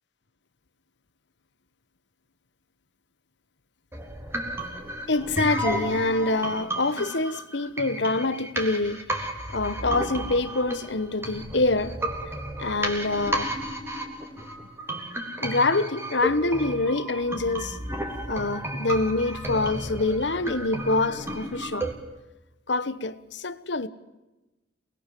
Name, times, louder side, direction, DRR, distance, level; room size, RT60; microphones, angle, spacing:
sound 1, 3.9-21.9, right 1 dB, 15° right, 3.5 m, -33 dB
voice 1, 5.1-9.0 9.5-12.0 12.6-13.5 15.4-17.8 18.3-21.9 22.7-23.9, left 2 dB, 75° left, 1.2 m, -26 dB
28.0 x 21.5 x 7.7 m
head